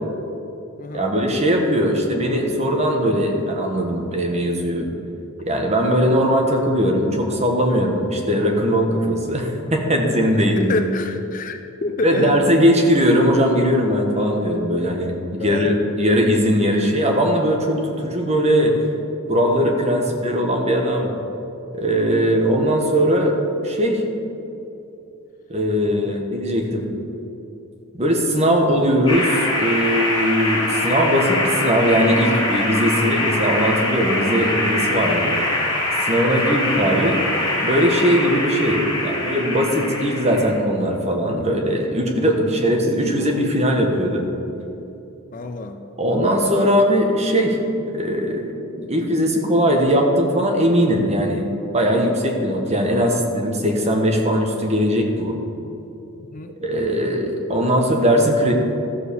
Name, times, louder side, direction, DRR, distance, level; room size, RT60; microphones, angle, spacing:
voice 1, 0.9-4.9 5.4-10.8 12.0-18.7 19.3-21.1 21.7-23.3 23.6-24.0 25.5-26.9 27.9-35.4 36.0-37.2 37.6-44.3 46.0-47.6 47.9-55.4 56.6-58.5, equal, 30° right, 1 dB, 1.2 m, -19 dB
voice 2, 10.3-12.4 15.4-15.8 22.1-22.3 26.0-26.2 36.3-36.6 45.3-45.8 56.3-56.5, left 2 dB, 35° left, 7 dB, 0.5 m, -28 dB
sound 1, 29.1-40.5, left 1 dB, 20° left, 2.5 m, -23 dB
14.0 x 4.8 x 6.8 m, 2.8 s
head